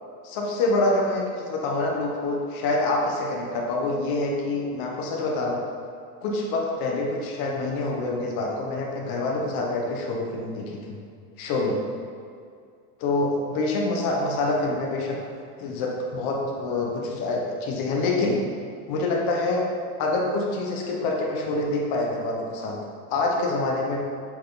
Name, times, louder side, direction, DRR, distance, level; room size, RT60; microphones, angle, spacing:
voice 1, 0.2-5.6 6.2-11.0 11.4-11.8 13.0-15.2 15.6-18.4 18.9-19.6 20.0-22.8 23.1-24.0, left 2 dB, 50° left, -1 dB, 1.2 m, -26 dB
8.4 x 4.3 x 4.0 m, 2.3 s
cardioid pair, 175°, 47 cm